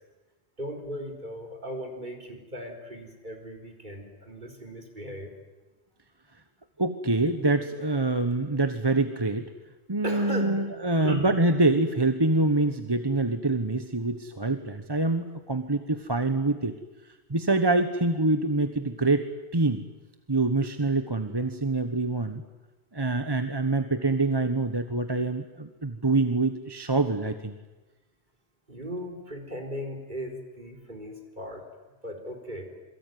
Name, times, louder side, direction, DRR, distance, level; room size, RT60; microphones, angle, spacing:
voice 1, 0.6-5.3 10.0-10.7 11.0-11.3 28.7-31.6 32.0-32.7, equal, 45° right, 2 dB, 4.6 m, -37 dB
voice 2, 6.8-9.5 9.9-16.7 17.0-19.3 19.5-19.8 20.3-22.4 22.9-27.6, right 2 dB, 20° right, 8 dB, 1.2 m, -25 dB
27.5 x 22.5 x 9.4 m, 1.2 s
omnidirectional pair, 1.1 m